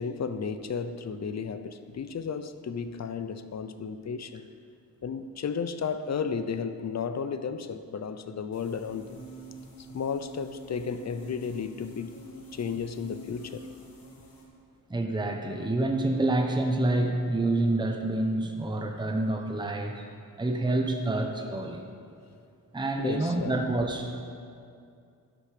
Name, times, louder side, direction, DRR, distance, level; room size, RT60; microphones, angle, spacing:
voice 1, 0.0-4.5 5.0-9.2 9.8-12.2 12.5-13.7 23.0-23.6, left 6 dB, 50° left, 0.7 m, -33 dB
sound 1, 8.5-14.4, right 1 dB, 80° left, 2.6 m, -47 dB
voice 2, 14.9-20.0 20.4-21.8 22.7-24.1, right 2 dB, 15° right, 0.9 m, -27 dB
12.0 x 11.5 x 5.0 m
wide cardioid pair, 140°, 34 cm